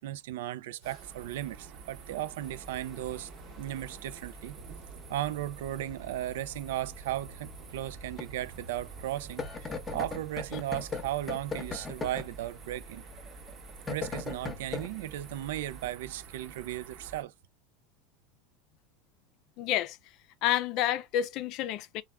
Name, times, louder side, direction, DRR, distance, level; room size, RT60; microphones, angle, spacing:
voice 1, 0.0-3.3 3.6-4.6 5.1-13.0 13.9-17.3, right 13 dB, 85° right, 0.3 m, -36 dB
sound 1, 0.8-17.2, right 5 dB, 50° right, 0.9 m, -49 dB
sound 2, 2.4-15.9, left 4 dB, 20° left, 0.7 m, -43 dB
voice 2, 19.6-20.0 20.4-22.0, left 12 dB, 55° left, 0.4 m, -29 dB
3.4 x 2.2 x 2.2 m
supercardioid pair, 130°, 0 cm